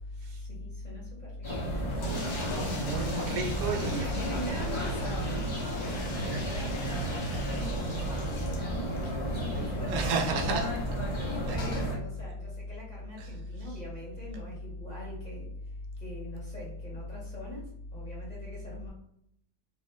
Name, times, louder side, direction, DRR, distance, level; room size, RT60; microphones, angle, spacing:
voice 1, 0.2-1.8 2.2-2.7 4.0-10.7 11.2-15.5 16.0-18.9, left 1 dB, 30° left, -6 dB, 0.9 m, -44 dB
sound 1, 1.4-12.0, right 1 dB, 45° left, 0.3 m, -33 dB
sound 2, 2.0-9.2 9.5-9.6 9.8-9.9 11.6-11.9, left 1 dB, 75° left, 1.3 m, -41 dB
voice 2, 2.8-4.3 9.9-10.7 11.5-11.6 13.2-13.3, right 4 dB, 85° right, 3 dB, 1.2 m, -31 dB
2.8 x 2.3 x 3.1 m, 0.73 s
omnidirectional pair, 1.7 m